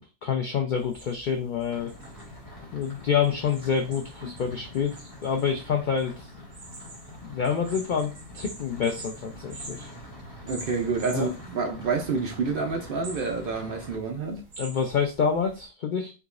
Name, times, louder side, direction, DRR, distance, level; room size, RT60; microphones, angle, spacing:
voice 1, 0.0-1.9 2.7-6.1 7.2-9.9 11.1-11.3 14.6-16.1, left 7 dB, 65° left, 0.4 m, -27 dB
sound 1, 0.8-15.7, right 2 dB, 90° right, 1.4 m, -47 dB
sound 2, 1.7-14.0, left 1 dB, 15° left, 1.4 m, -45 dB
Marimba xylophone / Wood, 4.2-6.4, left 5 dB, 20° right, 1.1 m, -51 dB
voice 2, 10.4-14.4, right 4 dB, 60° right, 0.6 m, -28 dB
3.6 x 2.9 x 2.4 m
omnidirectional pair, 1.4 m